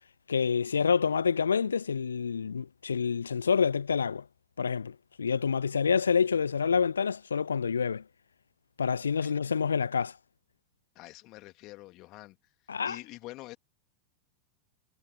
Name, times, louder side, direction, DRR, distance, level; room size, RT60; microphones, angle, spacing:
voice 1, 0.3-4.2 4.6-8.0 8.8-10.2 12.7-13.0, left 6 dB, 70° left, 0.6 m, -27 dB
voice 2, 10.9-12.4 12.9-13.6, left 19 dB, 40° left, 2.7 m, -46 dB
figure-of-eight pair, 90°, 0 cm